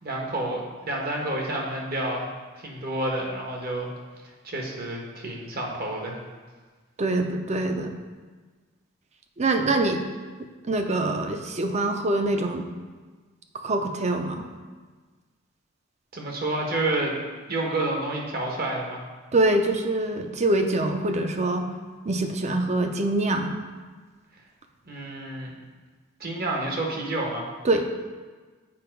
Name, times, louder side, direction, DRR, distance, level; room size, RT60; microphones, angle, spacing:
voice 1, 0.0-2.3 2.6-3.9 4.4-6.2 16.1-17.1 17.5-19.0 24.9-25.5 26.2-27.4, right 2 dB, 50° right, -1 dB, 1.3 m, -29 dB
voice 2, 7.0-8.0 9.4-10.0 10.7-12.7 13.6-14.5 19.3-21.7 22.1-23.5 27.6-27.9, right 2 dB, 35° right, 5 dB, 0.6 m, -24 dB
7.3 x 4.9 x 4.6 m, 1.4 s
head